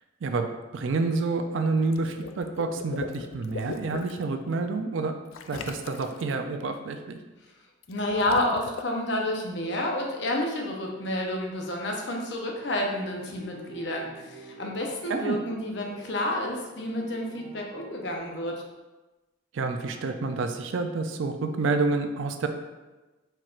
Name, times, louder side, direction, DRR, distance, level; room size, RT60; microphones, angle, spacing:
voice 1, 0.7-5.1 5.5-7.2 15.1-15.4 19.5-22.5, right 3 dB, 70° right, 6 dB, 0.4 m, -28 dB
Water / Liquid, 1.8-4.2 5.3-6.3 7.8-8.8, left 5 dB, 85° left, 0.3 m, -39 dB
voice 2, 7.9-18.5, left 1 dB, 60° left, 0 dB, 0.7 m, -30 dB
sound 1, 13.2-18.5, right 3 dB, 35° right, 1.0 m, -48 dB
4.5 x 4.4 x 2.4 m, 1.1 s
head